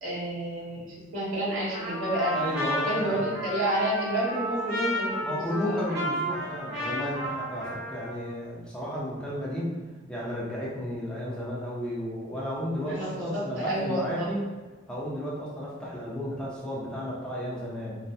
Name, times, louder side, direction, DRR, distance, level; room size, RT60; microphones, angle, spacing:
voice 1, 0.0-0.8 1.1-2.4 2.8-5.8 12.8-14.3, right 1 dB, 90° right, -7 dB, 0.9 m, -30 dB
Trumpet, 1.7-8.3, equal, 55° right, 0.7 m, -32 dB
voice 2, 2.3-3.3 5.2-9.7 10.1-14.4 14.9-18.0, equal, 5° left, -7 dB, 0.5 m, -33 dB
3.1 x 2.1 x 2.6 m, 1.3 s
head